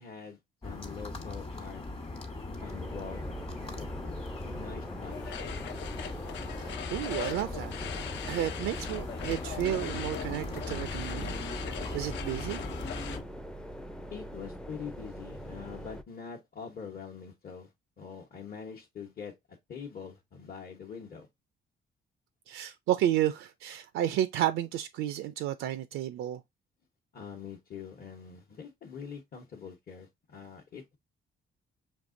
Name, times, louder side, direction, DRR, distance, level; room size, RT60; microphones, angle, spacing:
voice 1, 0.0-1.8 2.6-3.2 3.5-5.4 14.1-17.7 18.0-21.3 27.1-31.0, left 6 dB, 50° left, 1.0 m, -44 dB
sound 1, 0.6-13.2, left 2 dB, 30° left, 1.1 m, -39 dB
sound 2, 2.6-16.0, equal, 5° left, 0.4 m, -43 dB
sound 3, 5.1-13.2, left 9 dB, 65° left, 0.5 m, -41 dB
voice 2, 6.7-7.7 8.2-11.4 11.9-12.6 22.5-26.4, right 12 dB, 85° right, 0.4 m, -31 dB
5.3 x 2.8 x 2.5 m
cardioid pair, 90°, 20 cm